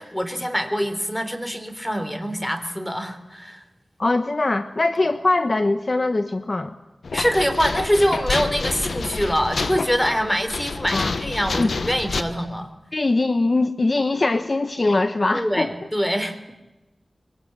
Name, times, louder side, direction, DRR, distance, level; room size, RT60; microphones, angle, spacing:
voice 1, 0.0-3.6 7.1-12.7 15.3-16.4, equal, 10° left, 9 dB, 3.7 m, -24 dB
voice 2, 4.0-6.7 10.9-11.2 11.6-11.7 12.9-15.7, left 2 dB, 45° left, 9 dB, 1.2 m, -21 dB
sound 1, 7.0-12.2, left 4 dB, 85° left, 1.4 m, -28 dB
24.0 x 23.5 x 8.8 m, 1.0 s
wide cardioid pair, 60°, 0 cm